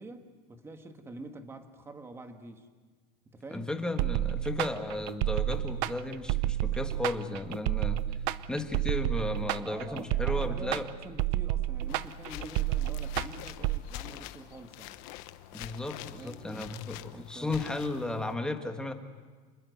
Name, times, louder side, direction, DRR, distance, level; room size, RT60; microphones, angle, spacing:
voice 1, 0.0-2.7 3.3-3.7 9.6-15.0 16.1-16.7 17.1-17.6, right 2 dB, 10° right, 6 dB, 1.6 m, -46 dB
voice 2, 3.5-8.0 8.5-10.9 15.5-18.9, left 2 dB, 5° left, 5 dB, 1.4 m, -34 dB
sound 1, 4.0-13.8, right 14 dB, 60° right, 0.7 m, -30 dB
sound 2, 11.9-18.3, left 15 dB, 60° left, 1.1 m, -45 dB
27.0 x 21.0 x 8.1 m, 1.4 s
cardioid pair, 165°, 20 cm